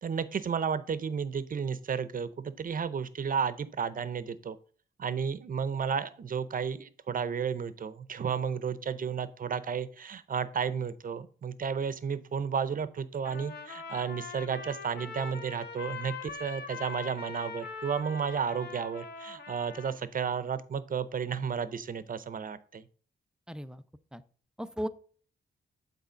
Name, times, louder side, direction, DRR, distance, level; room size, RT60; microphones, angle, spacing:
voice 1, 0.0-4.6 5.0-22.8, right 6 dB, 50° right, 14 dB, 0.7 m, -32 dB
Trumpet, 13.2-20.0, left 5 dB, 60° left, 1.2 m, -42 dB
voice 2, 23.5-23.8 24.1-24.2 24.6-24.9, equal, 5° right, 12 dB, 0.5 m, -36 dB
8.3 x 4.0 x 5.1 m, 0.44 s
cardioid pair, 95°, 19 cm